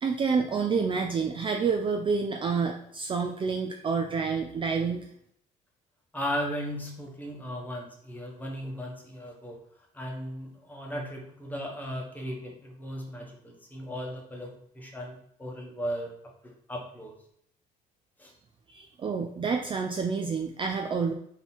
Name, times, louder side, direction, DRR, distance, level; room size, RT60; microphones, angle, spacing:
voice 1, 0.0-5.1 18.7-21.1, right 5 dB, 30° right, 3 dB, 0.4 m, -28 dB
voice 2, 6.1-9.6 9.9-16.1 16.7-17.1 18.2-18.3, equal, 10° left, 0 dB, 1.1 m, -36 dB
3.9 x 2.9 x 4.3 m, 0.67 s
cardioid pair, 110°, 17 cm